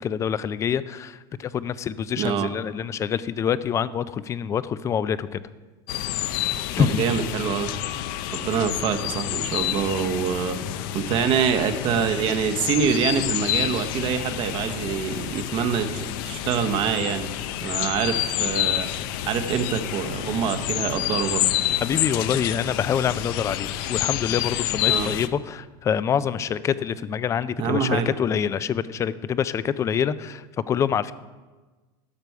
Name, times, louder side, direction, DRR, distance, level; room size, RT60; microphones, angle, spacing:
voice 1, 0.0-5.3 6.8-7.0 21.8-30.4 30.7-31.1, left 8 dB, 25° left, 16 dB, 0.4 m, -26 dB
voice 2, 2.2-2.5 6.8-7.7 8.3-10.6 10.9-17.3 17.6-18.9 19.3-21.5 24.9-25.1 27.6-28.1, right 7 dB, 50° right, 7 dB, 0.9 m, -25 dB
sound 1, 5.9-25.3, left 12 dB, 75° left, 0.5 m, -28 dB
12.5 x 6.8 x 4.7 m, 1.3 s
supercardioid pair, 135°, 12 cm